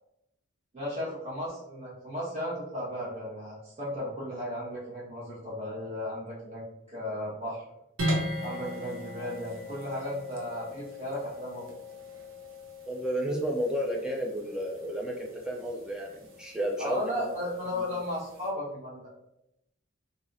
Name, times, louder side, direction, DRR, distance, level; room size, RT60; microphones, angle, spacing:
voice 1, 0.7-7.6 8.4-11.8 16.8-19.1, left 1 dB, 30° right, -8 dB, 1.4 m, -35 dB
sound 1, 8.0-18.5, equal, 75° right, 0.7 m, -39 dB
voice 2, 12.9-17.1 17.7-17.9, equal, 5° right, -1 dB, 0.3 m, -32 dB
3.1 x 2.7 x 2.6 m, 0.84 s
head